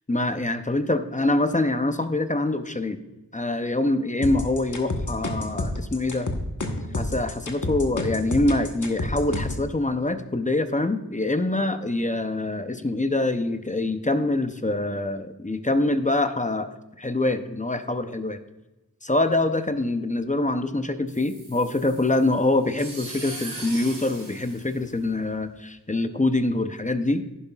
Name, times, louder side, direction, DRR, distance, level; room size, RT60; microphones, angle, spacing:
voice 1, 0.1-3.0 3.3-6.3 6.9-16.7 17.0-18.4 19.0-27.2, left 2 dB, 20° left, 9 dB, 0.6 m, -25 dB
sound 1, 4.2-9.7, left 1 dB, 55° left, 1.2 m, -29 dB
sound 2, 21.1-25.4, right 2 dB, 65° right, 3.1 m, -40 dB
11.0 x 10.5 x 2.4 m, 1.0 s
wide cardioid pair, 60°, 36 cm